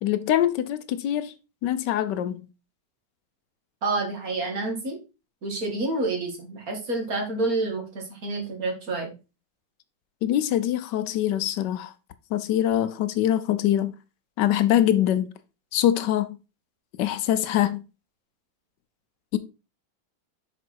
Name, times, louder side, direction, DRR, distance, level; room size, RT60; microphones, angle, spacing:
voice 1, 0.0-1.3 1.6-2.5 10.2-11.9 12.3-13.9 14.4-15.3 15.7-16.4 17.0-17.8 19.3-19.4, left 11 dB, 80° left, 1.3 m, -23 dB
voice 2, 3.8-5.0 5.4-9.1, right 2 dB, 55° right, 2.4 m, -28 dB
6.7 x 4.6 x 4.5 m
omnidirectional pair, 1.9 m